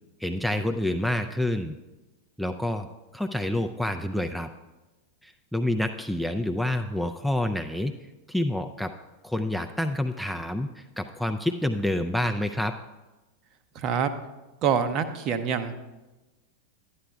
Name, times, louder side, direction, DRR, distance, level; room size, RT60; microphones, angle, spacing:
voice 1, 0.2-1.8 2.4-2.9 3.1-4.5 5.2-7.9 8.3-8.9 9.2-12.8, left 1 dB, ahead, 7 dB, 0.3 m, -28 dB
voice 2, 13.7-14.1 14.6-15.8, right 7 dB, 35° right, 9 dB, 0.6 m, -25 dB
12.0 x 9.8 x 2.3 m, 1.1 s
figure-of-eight pair, 90°, 0 cm